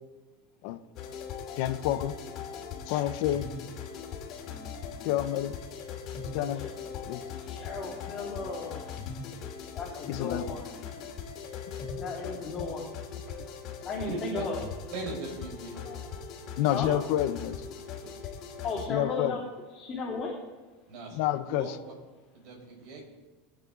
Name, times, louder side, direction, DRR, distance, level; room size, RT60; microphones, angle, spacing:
sound 1, 1.0-18.9, left 6 dB, 45° left, 2.8 m, -40 dB
voice 1, 1.6-2.1 2.9-3.5 5.0-5.5 6.3-6.7 7.1-7.2 10.1-10.4 12.0-12.1 16.6-17.6 18.9-19.3 21.1-21.8, left 12 dB, 60° left, 10 dB, 1.0 m, -28 dB
voice 2, 7.4-9.0 9.7-10.7 12.0-12.8 13.3-13.4 13.8-14.6 15.8-16.0 16.7-17.0 18.6-19.5 19.7-20.3, left 4 dB, 25° left, -6 dB, 3.5 m, -35 dB
voice 3, 14.0-14.5 14.9-15.8 18.0-18.1 20.9-21.2 21.5-21.9 22.3-23.1, right 3 dB, 55° right, 0 dB, 5.5 m, -39 dB
23.5 x 9.0 x 4.0 m, 1.3 s
supercardioid pair, 145°, 0 cm